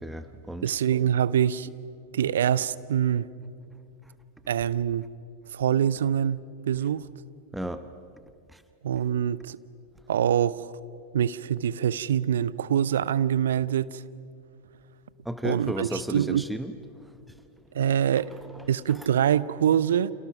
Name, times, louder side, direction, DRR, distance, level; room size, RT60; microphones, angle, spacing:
voice 1, 0.0-0.7 7.5-7.8 8.5-8.6 15.2-16.7 18.3-19.0, right 1 dB, 5° right, 11 dB, 0.9 m, -34 dB
voice 2, 0.6-1.7 2.1-3.3 4.5-5.1 5.5-6.4 6.7-7.1 8.8-9.6 10.1-10.7 11.1-14.0 15.4-16.4 17.7-18.3 18.7-20.1, right 9 dB, 60° right, 18 dB, 0.7 m, -24 dB
30.0 x 28.0 x 6.0 m, 2.4 s
figure-of-eight pair, 90°, 0 cm